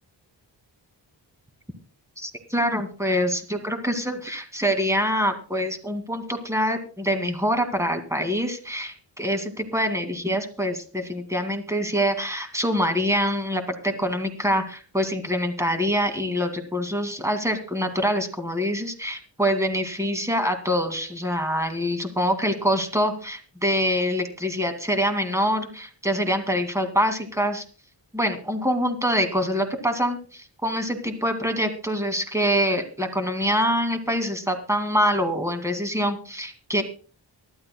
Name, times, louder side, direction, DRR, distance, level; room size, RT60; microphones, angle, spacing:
voice 1, 2.2-27.6 28.1-36.8, equal, 5° right, 6 dB, 2.3 m, -25 dB
24.0 x 12.0 x 2.3 m, 0.39 s
wide cardioid pair, 90°, 44 cm